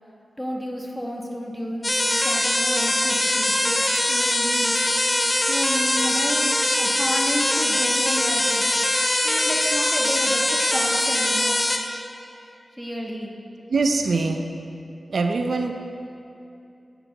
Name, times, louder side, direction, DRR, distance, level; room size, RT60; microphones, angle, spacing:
voice 1, 0.4-3.8 4.1-4.7 5.5-11.6 12.8-13.3, equal, ahead, -1 dB, 1.2 m, -31 dB
sound 1, 1.8-11.8, left 1 dB, 25° left, 0.8 m, -22 dB
voice 2, 13.7-14.4 15.1-15.7, right 3 dB, 75° right, 5 dB, 0.5 m, -23 dB
11.0 x 7.3 x 4.0 m, 2.7 s
wide cardioid pair, 75°, 0 cm